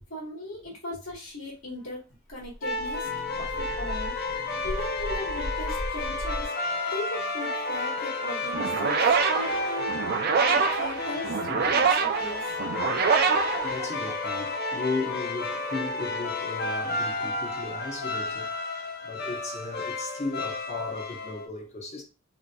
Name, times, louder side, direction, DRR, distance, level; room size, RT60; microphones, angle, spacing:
voice 1, 0.1-2.0 2.3-3.1 3.3-4.1 4.6-6.5 6.9-9.0 9.3-10.2 10.5-11.4 11.6-12.5, left 1 dB, 75° left, 1.3 m, -38 dB
Dog, 1.8-1.9 2.3-6.4, equal, 5° left, 1.0 m, -37 dB
sound 1, 2.6-21.5, left 2 dB, 50° left, 0.5 m, -32 dB
voice 2, 3.0-4.8 6.7-6.8 11.5-11.7 13.6-18.5 19.0-22.0, left 3 dB, 35° left, 0.9 m, -36 dB
sound 2, 8.5-14.4, right 6 dB, 50° right, 0.4 m, -25 dB
3.7 x 2.7 x 2.2 m
head